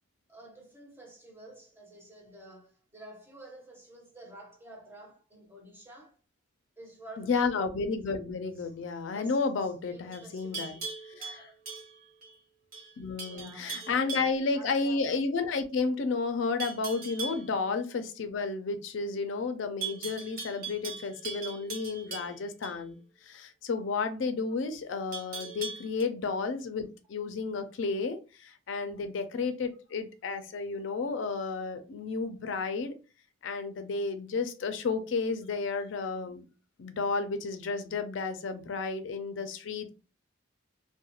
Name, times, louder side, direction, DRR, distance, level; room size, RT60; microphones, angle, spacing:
voice 1, 0.3-6.2 6.8-7.7 8.6-8.7 9.1-11.4 13.2-15.0, right 1 dB, 10° right, 0.6 m, -50 dB
voice 2, 7.2-10.8 11.2-11.4 13.0-33.0 33.4-36.4 36.8-39.9, left 4 dB, 70° left, 0.4 m, -32 dB
Livestock farm animals working animals, 10.1-12.3 12.7-12.9 13.2-14.4 16.6-17.5 19.8-22.8 25.1-26.0, right 4 dB, 50° right, 0.7 m, -40 dB
2.3 x 2.1 x 2.9 m
head